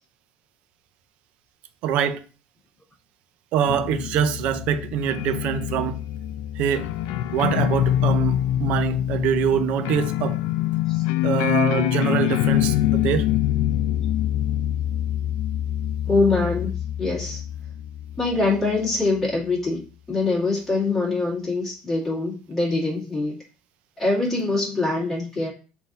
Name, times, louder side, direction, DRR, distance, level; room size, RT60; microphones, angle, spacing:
voice 1, 1.8-2.2 3.5-6.0 6.6-6.9 7.3-10.4 11.2-13.3, right 9 dB, 55° right, 0.5 m, -24 dB
sound 1, 3.7-19.0, left 12 dB, 75° left, 0.3 m, -25 dB
voice 2, 16.1-17.4 18.2-19.8 20.1-23.4 24.0-25.5, left 3 dB, 10° left, 1.7 m, -24 dB
3.9 x 2.7 x 3.8 m
cardioid pair, 145°, 3 cm